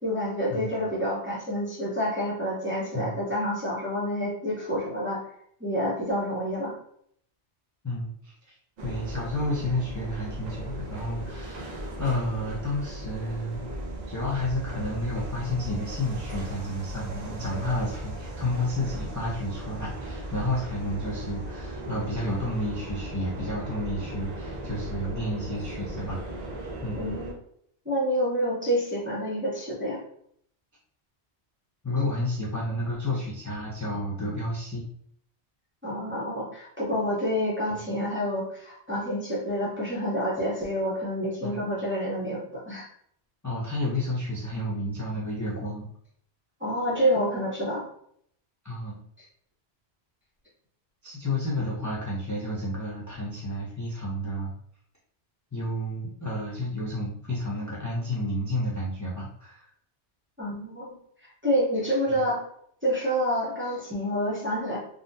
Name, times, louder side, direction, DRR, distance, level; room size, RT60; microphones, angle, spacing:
voice 1, 0.0-5.2 5.6-6.8 27.0-27.4 27.8-30.0 35.8-42.9 46.6-47.8 60.4-60.9 61.4-62.4 62.8-64.8, equal, 15° right, -7 dB, 0.7 m, -28 dB
voice 2, 7.8-8.5 8.8-13.6 14.1-26.2 26.8-27.1 31.8-34.9 37.7-37.8 41.4-41.6 43.4-45.9 48.6-49.0 51.0-54.5 55.5-59.7 62.1-62.2, left 1 dB, 25° left, -7 dB, 0.5 m, -31 dB
sound 1, 8.8-27.3, right 1 dB, 50° right, 0.6 m, -37 dB
3.7 x 2.0 x 2.6 m, 0.67 s
omnidirectional pair, 1.1 m